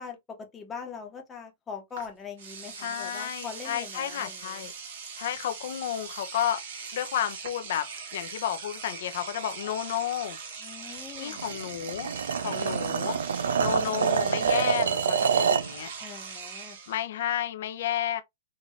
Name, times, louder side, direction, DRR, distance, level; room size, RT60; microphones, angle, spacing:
voice 1, 0.0-4.7 10.6-11.4 16.0-16.8, left 6 dB, 20° left, 1.1 m, -42 dB
Engine / Domestic sounds home sounds, 2.0-2.1 2.4-17.0, right 5 dB, 65° right, 1.9 m, -41 dB
voice 2, 2.8-4.7 5.1-6.6 6.9-10.4 11.2-12.1 12.4-13.2 13.6-15.9 16.9-18.2, left 10 dB, 65° left, 0.8 m, -32 dB
sound 1, 11.4-15.7, right 6 dB, 85° right, 0.4 m, -26 dB
4.7 x 2.6 x 2.8 m
hypercardioid pair, 125°, 0 cm